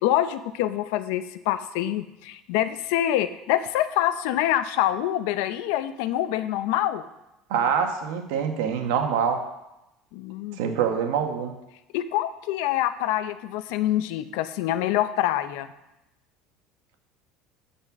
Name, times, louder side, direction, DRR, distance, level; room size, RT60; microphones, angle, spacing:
voice 1, 0.0-7.0 10.1-10.6 11.9-15.7, left 13 dB, 75° left, 12 dB, 0.6 m, -26 dB
voice 2, 7.5-9.4 10.6-11.5, right 7 dB, 85° right, 5 dB, 1.4 m, -25 dB
13.0 x 4.4 x 6.0 m, 0.92 s
cardioid pair, 155°, 0 cm